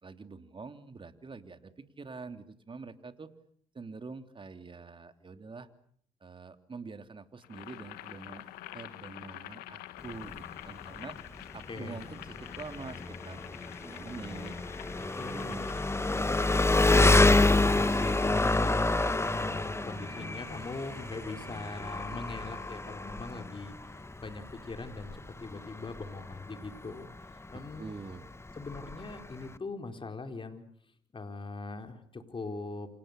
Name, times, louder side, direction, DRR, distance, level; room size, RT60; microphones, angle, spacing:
voice 1, 0.0-3.3 3.7-5.7 6.2-8.4 8.7-11.2 11.5-13.4 13.8-15.7 27.8-28.3, right 4 dB, 35° right, 9 dB, 3.1 m, -45 dB
Boiling, 7.4-16.8, left 15 dB, 75° left, 1.5 m, -47 dB
Engine, 10.0-29.6, left 2 dB, 15° left, 1.6 m, -28 dB
voice 2, 11.7-12.1 15.1-15.7 17.2-27.9 28.6-30.6 31.1-32.9, left 3 dB, 35° left, 6 dB, 4.5 m, -41 dB
sound 1, 16.5-22.8, right 8 dB, 65° right, 3.5 m, -51 dB
29.0 x 27.0 x 6.8 m, 0.62 s
hypercardioid pair, 55°, 16 cm